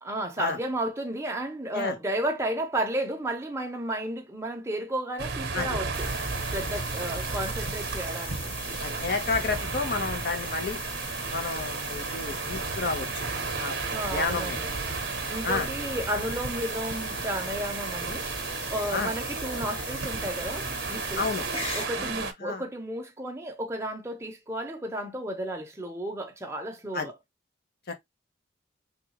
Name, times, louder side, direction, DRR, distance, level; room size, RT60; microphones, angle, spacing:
voice 1, 0.0-6.1 6.4-8.4 13.8-14.7 15.3-18.3 18.7-21.3 21.7-27.2, right 1 dB, 15° right, 0.8 m, -33 dB
sound 1, 5.2-22.3, right 4 dB, 60° right, 0.8 m, -33 dB
sound 2, 5.9-21.9, left 2 dB, 30° left, 1.0 m, -39 dB
voice 2, 8.8-10.8 11.3-13.1 13.6-13.8 14.1-14.6 15.4-15.7 18.9-19.1 21.2-21.4 22.0-22.1 22.4-22.6 26.9-27.1, left 4 dB, 55° left, 0.8 m, -30 dB
3.5 x 2.4 x 2.9 m
head